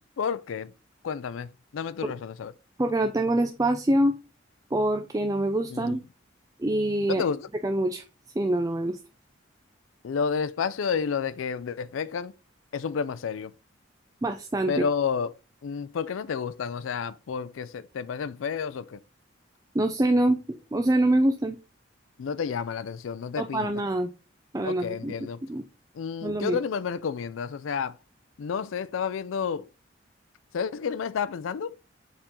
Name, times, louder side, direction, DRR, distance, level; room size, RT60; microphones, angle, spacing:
voice 1, 0.2-0.7 1.0-2.5 5.7-6.0 7.1-7.5 10.0-12.3 12.7-13.5 14.7-15.3 15.6-19.0 22.2-23.7 24.6-25.4 25.9-28.0 28.4-29.7 30.5-31.7, left 6 dB, 90° left, 0.4 m, -30 dB
voice 2, 2.8-4.2 4.7-6.0 6.6-7.2 7.6-8.0 8.4-9.0 14.2-14.8 19.7-20.4 20.7-21.6 23.4-24.1 24.5-25.1 25.4-25.6 26.2-26.6, right 1 dB, 20° right, 0.4 m, -25 dB
6.8 x 4.2 x 3.7 m
head